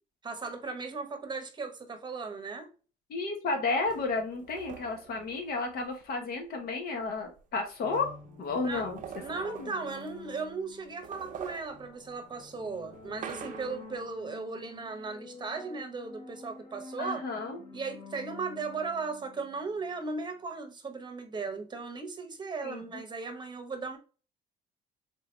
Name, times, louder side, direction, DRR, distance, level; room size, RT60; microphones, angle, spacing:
voice 1, 0.2-2.7 8.6-8.9 9.2-17.2 17.7-24.0, right 4 dB, 25° right, 0.9 m, -37 dB
voice 2, 3.1-8.1 8.4-9.0 9.4-9.7 17.0-17.6 22.6-22.8, left 3 dB, 65° left, 1.2 m, -32 dB
sound 1, 3.9-6.0 7.0-7.1 7.4-10.5 10.9-14.0, right 8 dB, 50° right, 0.5 m, -46 dB
sound 2, 7.8-20.3, left 4 dB, 30° left, 0.9 m, -50 dB
3.6 x 2.8 x 3.1 m
cardioid pair, 110°, 17 cm